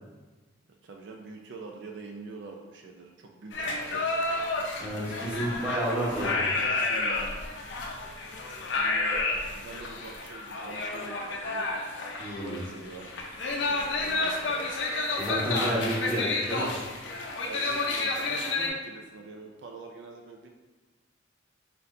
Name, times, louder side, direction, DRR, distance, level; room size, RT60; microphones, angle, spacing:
voice 1, 0.8-4.3 4.6-5.4 5.8-7.4 8.7-11.8 12.4-14.7 17.4-20.5, right 3 dB, 65° right, 2 dB, 0.4 m, -44 dB
sound 1, 3.5-18.7, left 3 dB, 70° left, 0.6 m, -30 dB
voice 2, 4.8-6.4 12.2-12.6 15.2-16.7, right 1 dB, 5° right, -7 dB, 1.0 m, -30 dB
4.2 x 3.8 x 2.6 m, 1.3 s
head